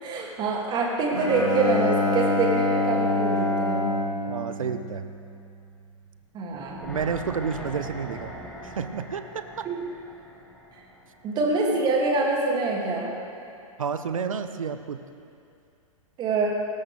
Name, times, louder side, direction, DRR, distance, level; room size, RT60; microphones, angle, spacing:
voice 1, 0.0-3.9 6.3-6.9 9.6-9.8 11.2-13.1 16.2-16.6, right 3 dB, 25° right, -1 dB, 2.7 m, -25 dB
Bowed string instrument, 1.1-5.5, left 2 dB, 80° left, 3.3 m, -26 dB
voice 2, 4.3-5.0 6.8-8.3 8.6-9.7 13.8-15.0, right 6 dB, 65° right, 9 dB, 1.0 m, -30 dB
sound 1, 6.5-11.7 12.0-12.1, left 1 dB, 5° left, 1.9 m, -41 dB
19.5 x 17.5 x 3.5 m, 2.5 s
figure-of-eight pair, 110°, 18 cm